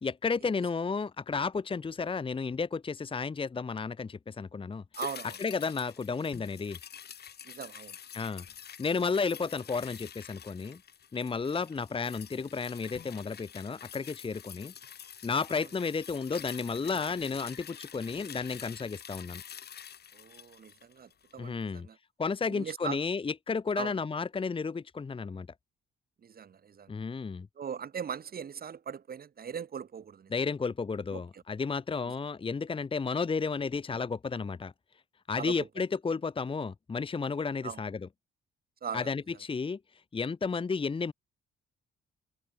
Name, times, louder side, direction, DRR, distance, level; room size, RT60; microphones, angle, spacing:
voice 1, 0.0-4.8 5.4-6.8 8.1-8.4 8.8-10.8 11.1-14.7 15.2-19.4 21.4-21.9 22.2-25.5 26.9-27.5 30.3-34.7 35.3-38.0 38.9-41.1, left 5 dB, 25° left, 1.1 m, -32 dB
sound 1, 4.9-21.4 21.7-21.8, left 8 dB, 55° left, 2.5 m, -47 dB
voice 2, 4.9-5.4 7.4-8.0 11.5-11.6 20.1-22.0 22.5-23.0 23.7-24.0 26.2-26.9 27.5-30.3 31.1-31.4 32.0-32.1 35.3-35.7 37.6-37.8 38.8-39.1, right 7 dB, 50° right, 3.2 m, -40 dB
cardioid pair, 90°, 20 cm